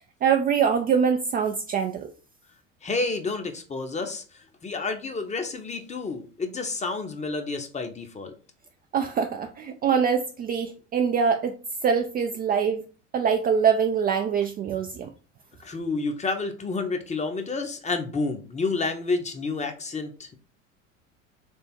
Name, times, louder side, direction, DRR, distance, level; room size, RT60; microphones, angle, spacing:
voice 1, 0.2-2.1 8.9-11.5 11.8-12.8 13.1-15.1, right 6 dB, 25° right, 0.4 m, -24 dB
voice 2, 2.8-8.3 15.6-20.4, left 3 dB, 20° left, 0.8 m, -30 dB
3.5 x 3.4 x 4.4 m
figure-of-eight pair, 75°, 38 cm